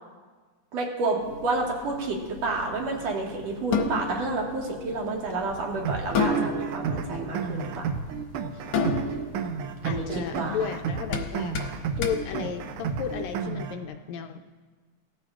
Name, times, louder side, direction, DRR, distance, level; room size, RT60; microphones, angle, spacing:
voice 1, 0.7-2.2 2.4-7.8 9.8-10.6, right 3 dB, 65° right, -1 dB, 2.8 m, -29 dB
sound 1, 1.2-13.3, left 3 dB, 65° left, 1.6 m, -33 dB
sound 2, 5.8-13.8, right 6 dB, 90° right, 1.2 m, -32 dB
voice 2, 9.8-11.6 12.0-14.4, left 7 dB, 80° left, 5 dB, 1.8 m, -33 dB
18.0 x 14.0 x 2.4 m, 1.4 s
omnidirectional pair, 3.3 m